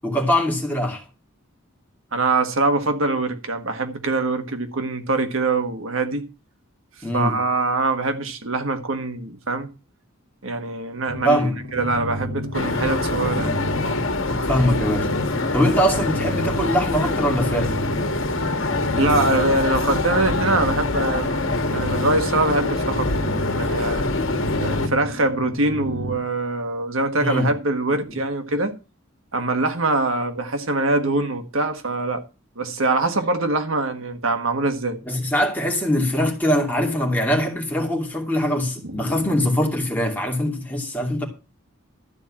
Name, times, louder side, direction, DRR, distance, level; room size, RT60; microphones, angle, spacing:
voice 1, 0.0-1.0 7.0-7.4 11.2-11.6 14.5-15.1 15.5-17.8 27.2-27.5 28.1-28.2 35.1-41.2, equal, 10° left, 2.4 m, -22 dB
voice 2, 2.1-6.2 7.1-9.7 10.4-11.4 11.7-13.6 18.9-23.1 23.6-24.1 24.6-28.7 29.3-32.2 32.6-35.0 38.8-39.1, right 2 dB, 75° right, 1.5 m, -23 dB
sound 1, 11.1-26.2, left 1 dB, 55° right, 4.9 m, -32 dB
sound 2, 12.5-24.9, left 2 dB, 65° left, 1.4 m, -24 dB
13.0 x 4.4 x 8.6 m
head